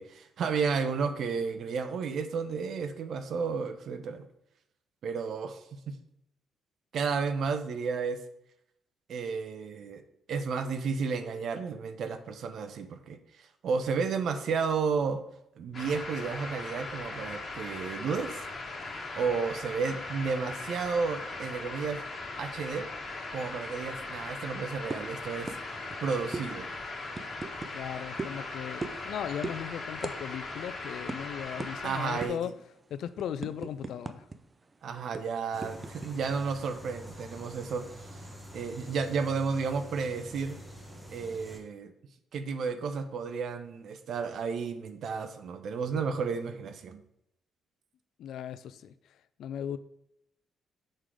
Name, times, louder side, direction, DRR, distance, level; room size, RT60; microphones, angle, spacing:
voice 1, 0.0-4.3 5.0-5.9 6.9-8.2 9.1-10.0 10.3-15.2 15.6-18.4 18.7-18.9 19.2-22.0 22.4-22.9 23.3-25.5 26.0-26.7 31.8-32.4 34.8-37.9 38.1-38.2 38.5-40.6 41.1-41.9 42.3-47.0, right 5 dB, 65° right, 0.7 m, -32 dB
sound 1, 15.7-32.3, left 3 dB, 40° left, 1.8 m, -39 dB
tap finger on small plastic bottle, 24.9-25.1 25.5-25.6 25.9-26.0 26.3-26.5 27.1-27.7 28.2-28.4 28.8-29.1 29.4-29.6 30.0-30.2 30.5-30.6 31.1-31.2 31.6-31.7 32.2-32.5 32.9-34.4 34.6-34.7 35.1-36.1, right 3 dB, 30° right, 0.6 m, -37 dB
voice 2, 27.7-32.5 32.9-34.3 48.2-48.9 49.4-49.8, left 9 dB, 75° left, 0.4 m, -37 dB
sound 2, 35.5-41.6, equal, 10° right, 1.4 m, -46 dB
6.6 x 3.8 x 4.7 m
cardioid pair, 90°, 0 cm